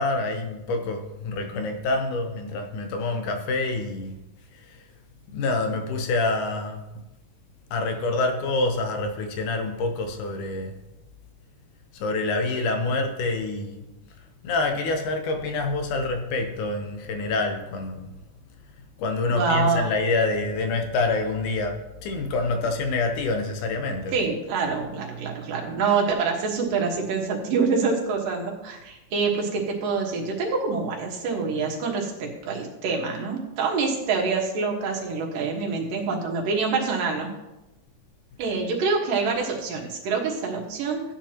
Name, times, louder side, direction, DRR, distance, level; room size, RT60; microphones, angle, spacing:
voice 1, 0.0-4.2 4.5-4.8 5.3-6.8 7.7-10.8 11.9-13.9 14.4-18.1 19.0-24.3, left 3 dB, 75° left, 5 dB, 2.4 m, -26 dB
voice 2, 19.3-19.9 24.1-37.3 38.4-41.0, right 4 dB, 85° right, 1 dB, 3.2 m, -26 dB
14.5 x 9.2 x 2.9 m, 1.0 s
omnidirectional pair, 3.8 m